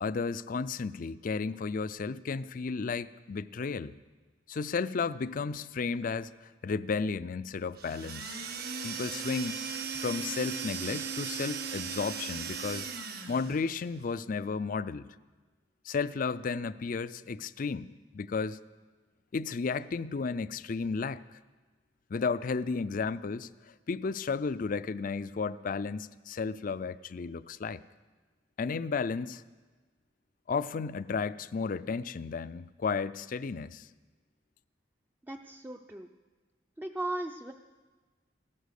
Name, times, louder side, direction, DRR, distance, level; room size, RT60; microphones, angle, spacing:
voice 1, 0.0-3.9 4.5-8.4 8.8-9.6 9.9-12.9 13.3-15.0 15.8-17.9 18.1-18.6 19.3-21.2 22.1-27.8 28.6-29.4 30.5-33.9, left 4 dB, 50° left, 0.4 m, -33 dB
sound 1, 7.8-13.6, right 6 dB, 60° right, 1.4 m, -37 dB
voice 2, 35.2-36.1 36.8-37.5, right 1 dB, 10° right, 0.5 m, -37 dB
15.5 x 13.0 x 6.6 m
head